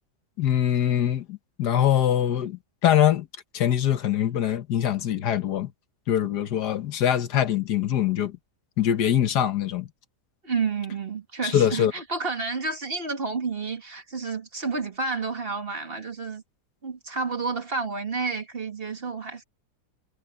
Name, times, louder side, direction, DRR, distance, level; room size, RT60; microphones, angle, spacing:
voice 1, 0.4-3.3 3.5-5.7 6.1-8.4 8.8-9.9 11.4-11.9, left 10 dB, 85° left, 1.7 m, -23 dB
voice 2, 10.4-16.4 16.8-19.4, right 4 dB, 35° right, 2.0 m, -30 dB
omnidirectional pair, 1.7 m